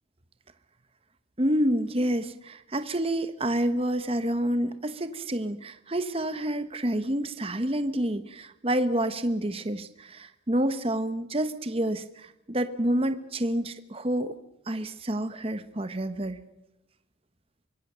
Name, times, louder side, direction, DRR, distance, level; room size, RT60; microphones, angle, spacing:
voice 1, 1.4-14.3 14.7-16.4, right 1 dB, 30° right, 10 dB, 1.1 m, -28 dB
24.5 x 22.0 x 6.8 m, 0.89 s
head